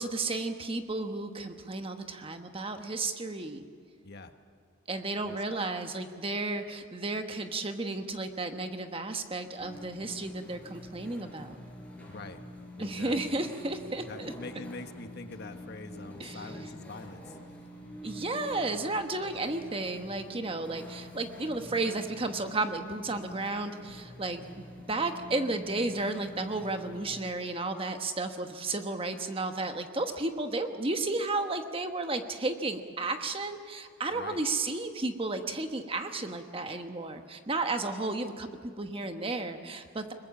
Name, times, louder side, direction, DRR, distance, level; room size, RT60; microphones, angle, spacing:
voice 1, 0.0-3.6 4.9-11.6 12.8-14.3 16.2-16.5 18.0-40.1, right 2 dB, 25° right, 6 dB, 1.2 m, -33 dB
voice 2, 4.0-4.3 5.2-5.6 12.1-12.4 12.8-13.4 14.1-17.4 34.1-34.4, left 3 dB, 55° left, 7 dB, 1.3 m, -44 dB
sound 1, 9.6-27.2, left 1 dB, 5° left, 4.8 m, -47 dB
22.5 x 21.0 x 7.2 m, 2.2 s
head